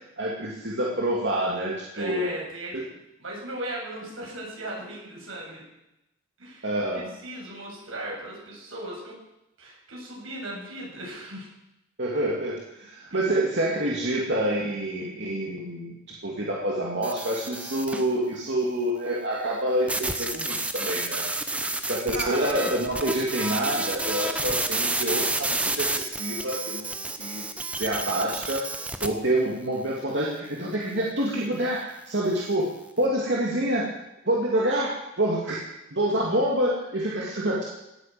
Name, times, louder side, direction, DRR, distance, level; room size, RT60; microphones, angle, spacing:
voice 1, 0.2-2.3 2.7-2.8 6.6-7.1 12.0-21.2 21.8-26.9 27.2-27.4 27.8-28.7 29.0-34.0 34.3-35.6 35.9-37.6, right 1 dB, 60° right, -4 dB, 2.8 m, -27 dB
voice 2, 1.9-2.8 3.2-5.6 6.4-9.2 9.6-11.5 13.1-13.2 13.8-13.9 22.1-22.8, right 1 dB, 85° right, -3 dB, 7.8 m, -36 dB
sound 1, 17.0-18.1 19.9-29.1, right 2 dB, 5° right, 0.9 m, -30 dB
18.0 x 9.9 x 7.8 m, 0.90 s
head